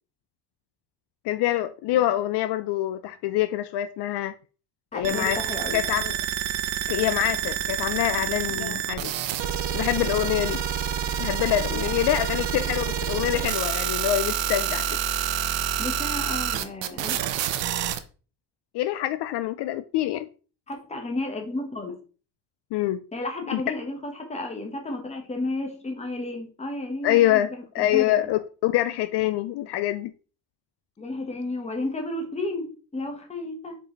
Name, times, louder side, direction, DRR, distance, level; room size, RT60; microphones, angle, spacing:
voice 1, 1.2-4.3 4.9-5.4 5.7-6.2 6.9-9.1 9.7-10.6 11.2-15.0 18.7-20.3 22.7-23.0 23.5-23.6 27.0-27.5 27.7-30.1, left 13 dB, 70° left, 0.5 m, -25 dB
voice 2, 4.9-5.8 8.5-8.8 11.7-11.9 15.8-17.2 20.7-21.9 23.1-28.2 31.0-33.8, left 2 dB, 15° left, 1.4 m, -32 dB
sound 1, 5.0-18.0, right 9 dB, 85° right, 0.8 m, -28 dB
5.0 x 4.8 x 3.9 m
cardioid pair, 155°, 43 cm